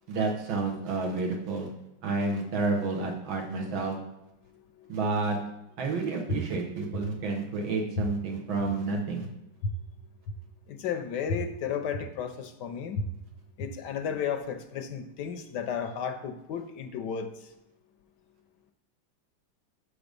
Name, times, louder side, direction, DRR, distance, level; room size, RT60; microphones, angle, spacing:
voice 1, 0.1-1.7 2.0-4.0 4.9-5.4 5.8-9.3, right 3 dB, 85° right, 1 dB, 2.0 m, -30 dB
sound 1, 6.3-6.4 6.9-7.0 8.0-8.1 8.6-8.7 9.6-9.7 10.3-10.4 11.3-11.4 11.9-12.0 12.9-13.0 13.6-13.7, left 2 dB, 90° left, 1.7 m, -29 dB
voice 2, 10.7-13.0 13.6-17.3, left 8 dB, 70° left, 8 dB, 1.1 m, -33 dB
6.5 x 4.9 x 5.2 m, 0.90 s
omnidirectional pair, 2.1 m